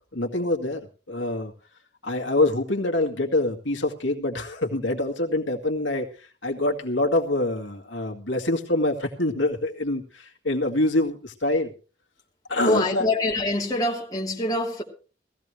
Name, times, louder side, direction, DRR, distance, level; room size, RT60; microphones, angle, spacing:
voice 1, 0.1-1.5 2.0-11.7 12.5-13.1, left 2 dB, 80° left, 2.1 m, -25 dB
voice 2, 12.6-14.8, left 1 dB, 20° left, 2.8 m, -25 dB
18.5 x 15.5 x 3.2 m
head